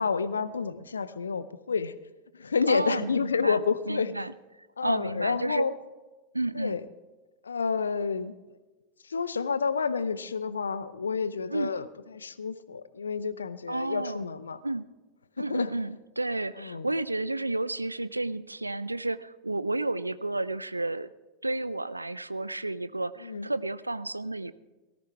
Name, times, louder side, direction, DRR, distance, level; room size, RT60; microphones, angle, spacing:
voice 1, 0.0-1.9 2.3-4.1 4.8-5.7 6.6-6.8 7.4-8.3 9.1-11.9 12.1-14.6 15.4-15.7 16.6-16.9 23.2-23.5, left 5 dB, 75° left, 15 dB, 0.6 m, -29 dB
voice 2, 2.7-4.3 4.8-5.6 6.3-6.8 11.5-11.7 13.7-14.3 14.6-14.9 15.4-21.1 21.4-24.5, right 2 dB, 85° right, 16 dB, 0.4 m, -31 dB
18.0 x 13.5 x 3.4 m, 1.2 s
figure-of-eight pair, 90°, 0 cm